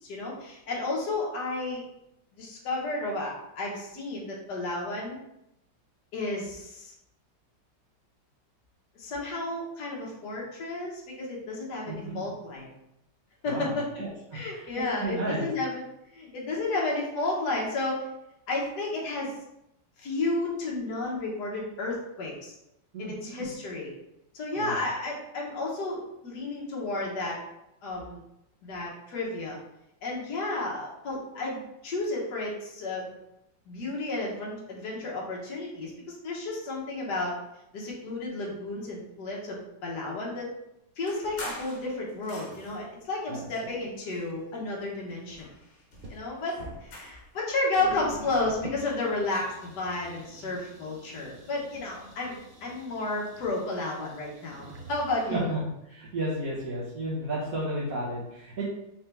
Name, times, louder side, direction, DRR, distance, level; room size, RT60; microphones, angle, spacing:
voice 1, 0.0-1.8 2.3-5.2 6.1-6.9 9.0-12.7 13.4-13.9 14.3-15.8 16.1-18.1 18.5-19.3 20.0-22.6 23.0-23.9 24.3-27.4 27.8-28.2 28.6-29.6 30.0-33.1 33.7-37.4 37.7-40.5 41.0-45.5 46.1-55.5, left 2 dB, 70° left, -3 dB, 1.7 m, -32 dB
voice 2, 11.9-12.3 13.5-15.5 22.9-23.5 24.6-24.8 43.3-43.5 55.3-55.6 55.9-58.6, right 1 dB, 55° right, -7 dB, 1.4 m, -33 dB
sound 1, 41.0-42.9 43.6-44.8 45.1-47.3, left 2 dB, 85° left, 1.6 m, -44 dB
sound 2, 41.4-41.5 42.5-42.6 43.3-43.4 43.8-44.6 45.1-45.5 45.9-46.2 47.0-47.1 47.3-47.4 47.7-55.3, right 1 dB, 85° right, 0.4 m, -47 dB
4.7 x 3.4 x 3.3 m, 0.84 s
omnidirectional pair, 1.9 m